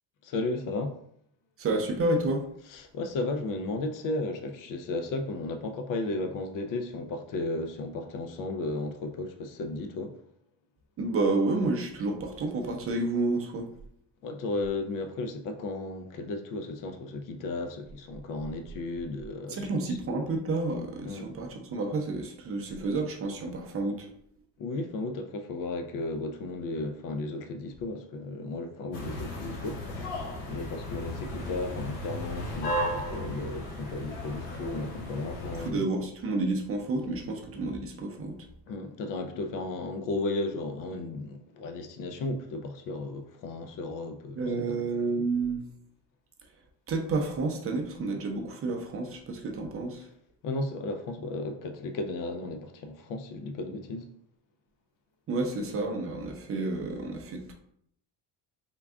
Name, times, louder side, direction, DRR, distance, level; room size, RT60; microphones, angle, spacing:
voice 1, 0.2-1.0 2.7-10.2 14.2-19.7 21.0-21.3 24.6-30.2 30.4-35.8 38.7-44.8 50.4-54.1 55.6-55.7, left 2 dB, 50° left, 0.5 m, -34 dB
voice 2, 1.6-2.4 11.0-13.7 19.5-24.1 35.6-38.4 44.3-45.6 46.9-50.1 55.3-57.5, right 3 dB, 35° right, 0.5 m, -30 dB
sound 1, 28.9-35.7, equal, 80° left, 1.0 m, -35 dB
3.6 x 2.3 x 3.5 m
cardioid pair, 140°, 42 cm